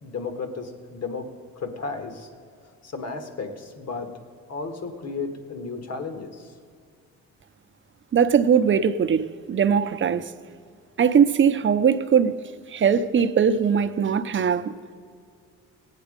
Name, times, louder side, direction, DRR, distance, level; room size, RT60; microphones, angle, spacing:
voice 1, 0.0-2.3 2.8-4.1 4.5-6.5, left 4 dB, 55° left, 1.6 m, -34 dB
voice 2, 8.1-10.3 11.0-12.4 12.7-14.9, right 7 dB, 40° right, 0.7 m, -20 dB
18.0 x 9.2 x 5.1 m
cardioid pair, 90°, 30 cm